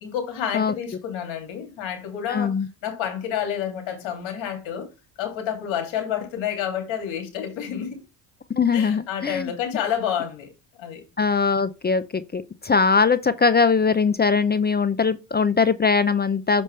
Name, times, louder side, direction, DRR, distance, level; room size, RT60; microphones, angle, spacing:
voice 1, 0.0-2.5 2.8-4.9 5.2-8.0 8.7-10.5 10.7-11.0, left 9 dB, 70° left, 2.7 m, -29 dB
voice 2, 2.3-2.7 8.6-9.5 11.2-16.6, left 5 dB, 20° left, 0.6 m, -21 dB
6.5 x 5.2 x 3.2 m
supercardioid pair, 80°, 47 cm